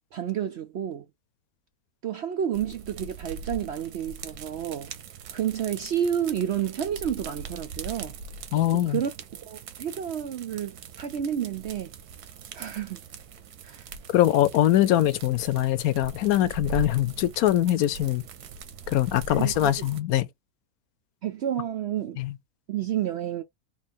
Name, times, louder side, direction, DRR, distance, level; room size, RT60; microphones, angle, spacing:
voice 1, 0.1-1.1 2.0-4.9 5.3-8.2 8.9-11.9 12.5-13.0 13.6-13.9 19.3-19.7 21.2-22.2 22.7-23.4, right 9 dB, 65° right, 0.6 m, -30 dB
sound 1, 2.5-20.0, right 5 dB, 90° right, 1.4 m, -41 dB
voice 2, 8.5-9.0 14.1-18.2 18.9-20.3 22.2-22.3, left 13 dB, 75° left, 1.0 m, -23 dB
4.0 x 3.0 x 4.2 m
omnidirectional pair, 1.6 m